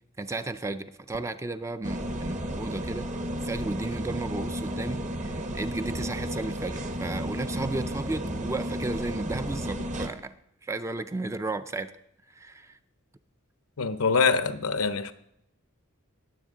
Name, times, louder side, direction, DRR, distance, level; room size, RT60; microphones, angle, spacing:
voice 1, 0.2-3.1 3.4-10.3 10.6-11.9 12.4-12.8, right 2 dB, 15° right, 0.3 m, -34 dB
sound 1, 1.8-10.1, equal, 35° right, 0.8 m, -33 dB
voice 2, 13.8-15.1, left 5 dB, 80° left, 0.7 m, -24 dB
19.5 x 7.3 x 3.7 m
head